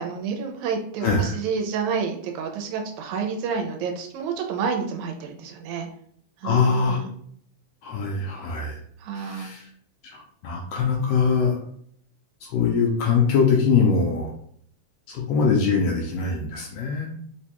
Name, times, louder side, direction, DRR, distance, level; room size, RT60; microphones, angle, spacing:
voice 1, 0.0-5.9 6.4-7.1 9.0-9.5, right 6 dB, 85° right, 2 dB, 2.1 m, -29 dB
voice 2, 1.0-1.4 6.4-7.0 7.8-8.8 9.1-9.7 10.0-11.6 12.4-14.3 15.1-17.1, left 5 dB, 75° left, 0 dB, 1.6 m, -22 dB
4.8 x 2.2 x 2.9 m, 0.63 s
omnidirectional pair, 3.3 m